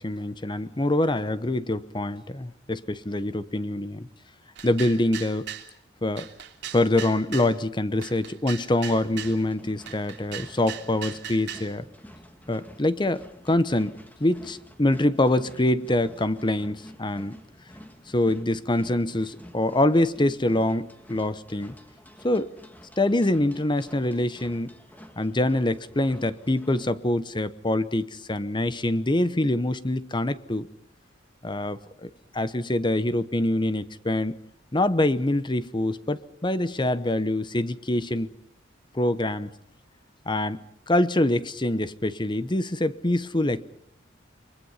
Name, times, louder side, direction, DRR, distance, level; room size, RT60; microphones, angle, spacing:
voice 1, 0.0-4.1 4.6-5.5 6.0-6.3 6.7-11.8 12.5-17.3 18.1-21.7 22.2-22.5 23.0-24.8 25.2-30.7 31.4-34.4 34.7-38.3 38.9-39.5 40.3-43.6, left 1 dB, 25° left, 0.9 m, -25 dB
sound 1, 4.6-5.7 6.2-7.5 8.0-9.4 9.9-11.7, right 10 dB, 65° right, 3.1 m, -38 dB
sound 2, 8.9-26.9, equal, 10° left, 1.9 m, -49 dB
29.5 x 23.5 x 5.7 m
head